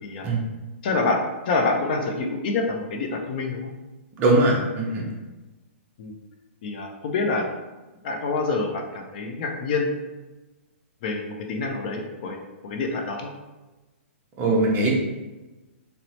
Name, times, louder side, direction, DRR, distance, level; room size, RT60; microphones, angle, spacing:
voice 1, 0.8-3.7 6.0-6.1 6.6-7.5 8.0-9.9 11.0-12.4 12.6-13.3, left 3 dB, 40° left, 2 dB, 0.4 m, -26 dB
voice 2, 4.2-5.1 14.4-15.0, right 2 dB, 25° right, -2 dB, 0.6 m, -21 dB
2.9 x 2.0 x 2.8 m, 1.1 s
hypercardioid pair, 155°, 7 cm